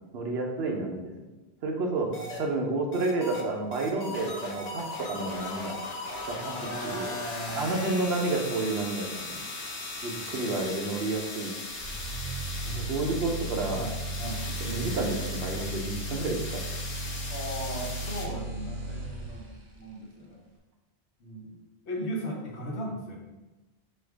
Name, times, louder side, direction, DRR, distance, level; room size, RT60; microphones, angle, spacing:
voice 1, 0.1-1.0 1.6-2.1 2.4-5.8 6.3-6.5 6.8-7.1 7.5-9.4 10.0-11.5 12.8-13.8 14.6-16.6, right 2 dB, 70° right, 1 dB, 0.9 m, -30 dB
voice 2, 2.1-2.7 6.3-7.9 10.1-10.5 12.6-13.1 13.7-14.4 17.3-20.4 21.2-21.6 21.8-23.2, equal, 75° left, -1 dB, 1.2 m, -38 dB
sound 1, 2.1-2.4 2.9-3.4 3.7-18.3, left 2 dB, 40° left, 0.8 m, -38 dB
sound 2, 11.7-19.7, right 2 dB, 35° right, 0.7 m, -36 dB
4.2 x 2.5 x 4.7 m, 1.1 s
omnidirectional pair, 1.1 m